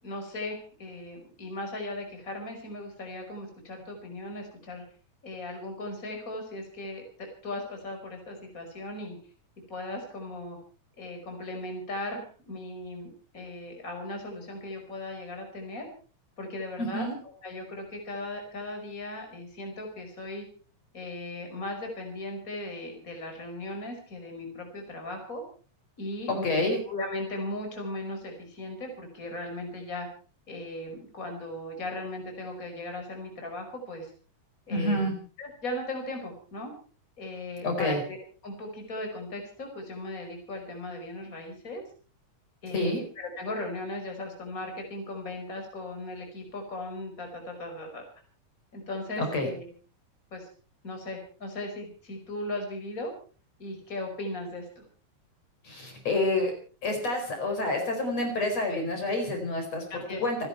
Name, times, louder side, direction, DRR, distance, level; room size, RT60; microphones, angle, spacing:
voice 1, 0.0-4.8 5.2-9.2 9.7-10.6 11.0-15.9 16.4-17.1 17.4-20.5 20.9-25.4 26.0-30.1 30.5-34.1 34.7-35.1 35.4-36.7 37.2-38.2 38.4-41.8 42.6-48.0 48.7-49.7 50.3-50.5 50.8-53.1 53.6-54.8 59.9-60.2, left 1 dB, 25° left, 3 dB, 5.2 m, -37 dB
voice 2, 16.8-17.1 26.3-26.8 34.7-35.1 37.6-38.0 42.7-43.0 49.2-49.5 55.6-56.5 56.8-59.8 60.2-60.4, left 2 dB, 55° left, 3 dB, 5.6 m, -28 dB
29.5 x 11.0 x 4.5 m, 0.41 s
omnidirectional pair, 3.6 m